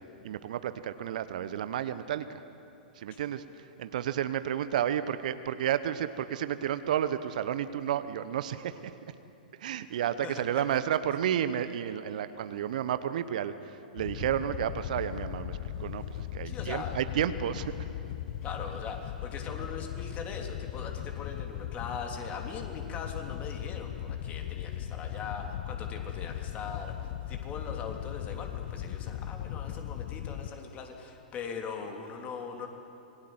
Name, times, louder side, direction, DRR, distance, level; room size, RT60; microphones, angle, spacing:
voice 1, 0.0-2.4 2.9-8.9 9.6-17.9, right 10 dB, 60° right, 12 dB, 1.0 m, -32 dB
voice 2, 10.2-10.6 16.4-16.9 18.4-32.7, left 5 dB, 30° left, 3 dB, 3.2 m, -41 dB
Wind / Boat Water vehicle, 14.0-30.5, left 11 dB, 50° left, 0.9 m, -38 dB
26.5 x 21.0 x 8.0 m, 2.8 s
figure-of-eight pair, 105°, 5 cm